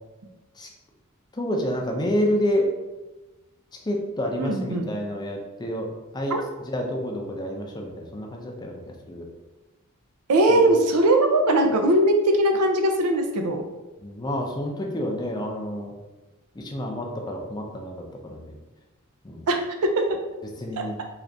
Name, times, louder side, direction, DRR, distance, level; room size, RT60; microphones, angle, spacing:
voice 1, 1.3-2.7 3.8-5.9 6.1-6.3 6.6-9.3 10.5-10.6 14.0-15.9 16.6-18.6 19.2-19.4 20.6-21.0, equal, 20° left, 1 dB, 0.5 m, -29 dB
voice 2, 4.4-4.9 6.3-6.4 10.3-13.6 19.5-20.2 20.8-21.0, right 1 dB, 85° right, 4 dB, 0.5 m, -20 dB
3.8 x 2.4 x 3.3 m, 1.1 s
head